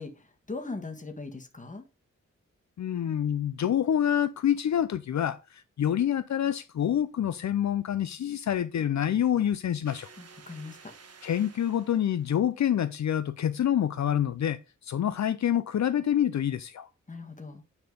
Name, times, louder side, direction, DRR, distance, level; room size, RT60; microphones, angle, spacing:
voice 1, 0.0-1.8 10.2-10.9 17.1-17.6, left 3 dB, 25° left, 1.7 m, -40 dB
voice 2, 2.8-10.1 11.2-16.9, left 10 dB, 70° left, 0.6 m, -27 dB
sound 1, 9.8-12.4, right 5 dB, 55° right, 1.4 m, -52 dB
9.6 x 4.4 x 5.2 m
wide cardioid pair, 140°, 30 cm